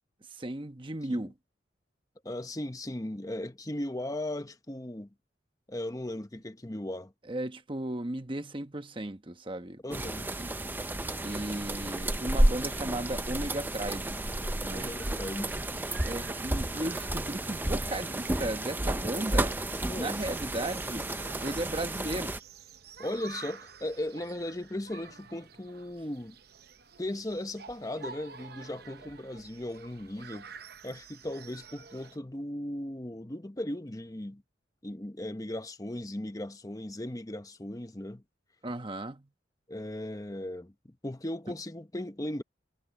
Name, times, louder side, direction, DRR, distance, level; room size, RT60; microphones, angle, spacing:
voice 1, 0.3-1.3 7.3-10.0 10.4-10.5 11.2-14.2 14.6-14.9 16.0-19.6 19.9-21.1 21.4-22.3 38.6-39.3, right 1 dB, 25° right, 1.0 m, -35 dB
voice 2, 2.2-5.1 5.7-7.1 9.8-10.3 14.7-15.5 19.9-20.2 23.0-26.4 27.0-30.6 30.8-34.4 34.8-38.2 39.7-42.4, left 1 dB, 20° left, 0.9 m, -37 dB
sound 1, 9.9-22.4, right 1 dB, 10° right, 0.6 m, -31 dB
sound 2, 14.7-32.2, right 5 dB, 55° right, 0.8 m, -50 dB
head